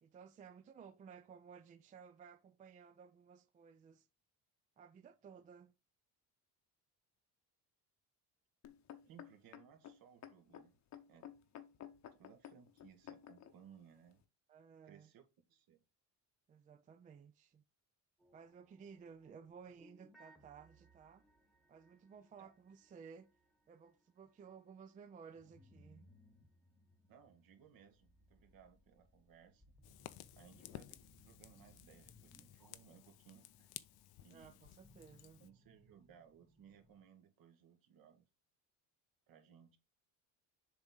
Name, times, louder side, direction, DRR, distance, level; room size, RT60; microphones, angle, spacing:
voice 1, 0.0-4.1 4.8-5.7 14.5-15.1 16.5-17.6 18.3-21.2 21.7-23.3 23.7-26.1 34.3-35.4, right 6 dB, 25° right, 0.3 m, -57 dB
sound 1, 8.6-13.5 14.2-14.3, left 10 dB, 50° left, 0.9 m, -53 dB
voice 2, 9.0-10.8 11.1-11.3 12.2-14.2 14.8-15.2 15.5-15.8 22.4-22.5 27.1-29.6 30.4-30.9 31.2-33.7 34.2-34.6 35.4-38.3 39.3-39.8, right 8 dB, 65° right, 1.5 m, -63 dB
sound 2, 18.2-24.6 25.2-37.1, equal, ahead, 1.1 m, -68 dB
Fire, 29.8-35.5, left 15 dB, 75° left, 0.6 m, -56 dB
6.9 x 3.6 x 3.9 m
cardioid pair, 145°, 37 cm